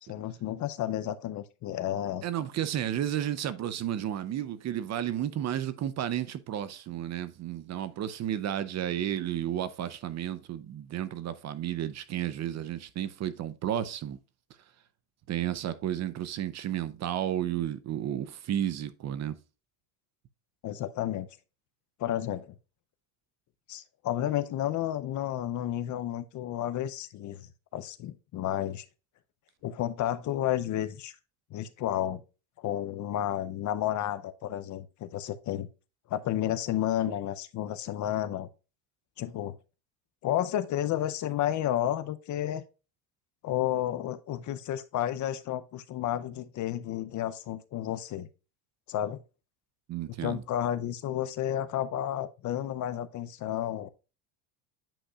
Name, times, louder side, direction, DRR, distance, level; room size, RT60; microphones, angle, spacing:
voice 1, 0.0-2.2 20.6-21.3 22.0-22.5 23.7-28.8 29.6-31.1 31.5-32.2 32.6-35.7 36.1-38.5 39.2-39.5 40.2-42.6 43.4-48.3 48.9-49.2 50.2-53.9, left 12 dB, 40° left, 0.6 m, -31 dB
voice 2, 2.2-14.2 15.3-19.3 49.9-50.4, right 11 dB, 35° right, 0.6 m, -32 dB
8.8 x 5.2 x 2.3 m
cardioid pair, 130°, 45 cm